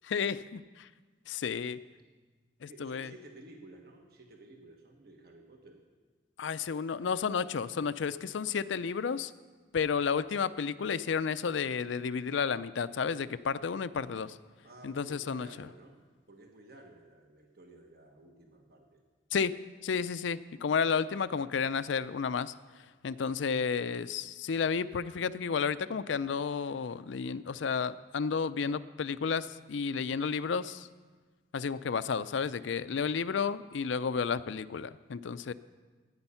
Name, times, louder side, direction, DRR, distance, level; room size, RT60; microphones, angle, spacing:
voice 1, 0.1-0.9 1.3-1.8 2.6-3.1 6.4-9.3 9.7-14.4 14.8-15.5 19.3-19.5 19.8-22.5 23.0-30.9 31.5-35.5, left 6 dB, 80° left, 15 dB, 0.4 m, -32 dB
voice 2, 2.7-5.8 14.6-16.0 16.3-19.1, right 2 dB, 55° right, 2 dB, 1.3 m, -54 dB
15.0 x 9.7 x 5.6 m, 1.4 s
head